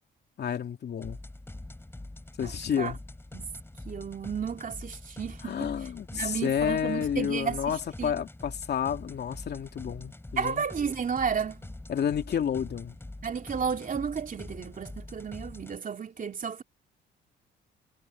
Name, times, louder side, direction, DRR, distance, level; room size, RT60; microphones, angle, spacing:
voice 1, 0.4-1.2 2.4-3.0 5.4-10.7 11.9-13.0, left 8 dB, 55° left, 2.7 m, -30 dB
sound 1, 1.0-15.8, left 2 dB, 10° left, 3.7 m, -44 dB
voice 2, 2.4-2.9 3.3-3.5 3.9-5.7 6.1-8.1 10.4-11.7 13.2-16.6, right 6 dB, 45° right, 2.9 m, -33 dB
cardioid pair, 90°, 20 cm